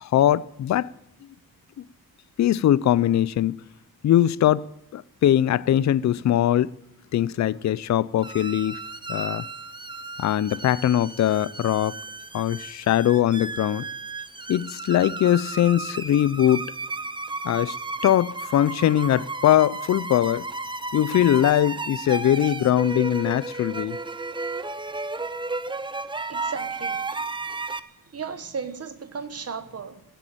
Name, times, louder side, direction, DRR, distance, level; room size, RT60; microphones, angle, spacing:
voice 1, 0.0-0.9 2.4-3.6 4.0-6.7 7.1-8.8 9.1-9.4 10.2-12.0 12.3-13.9 14.5-16.7 17.4-17.7 18.0-20.5 20.9-24.0, left 11 dB, 50° left, 0.4 m, -21 dB
sound 1, 8.2-27.8, right 3 dB, 15° right, 0.6 m, -34 dB
voice 2, 26.3-27.2 28.1-30.0, right 6 dB, 40° right, 1.4 m, -35 dB
16.0 x 8.4 x 9.1 m
wide cardioid pair, 135°, 36 cm